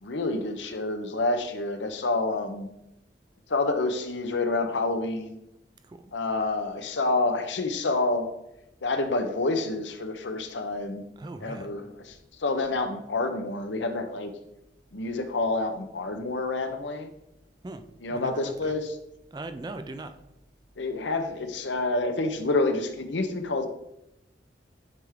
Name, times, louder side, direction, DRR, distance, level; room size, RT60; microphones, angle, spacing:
voice 1, 0.0-2.7 3.5-5.4 6.1-8.3 8.8-11.1 11.4-14.3 14.9-17.1 18.0-19.0 20.8-23.7, left 2 dB, 80° left, 7 dB, 0.7 m, -28 dB
voice 2, 11.2-11.7 17.6-18.8 19.3-20.1, right 2 dB, 20° right, 9 dB, 0.3 m, -40 dB
9.3 x 3.4 x 3.6 m, 0.84 s
head